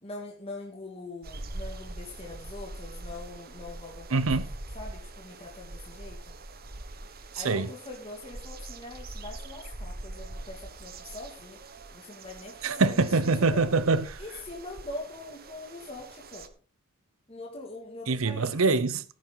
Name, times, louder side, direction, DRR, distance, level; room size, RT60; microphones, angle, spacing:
voice 1, 0.0-4.3 4.7-6.3 7.3-11.6 11.9-13.1 13.4-13.7 14.2-16.5 17.3-18.6, left 2 dB, 30° left, 2.4 m, -43 dB
sound 1, 1.2-16.5, right 2 dB, 45° right, 1.4 m, -43 dB
voice 2, 4.1-4.4 7.4-7.7 12.6-14.1 18.1-19.0, right 3 dB, 75° right, 0.9 m, -24 dB
16.0 x 8.9 x 4.0 m
head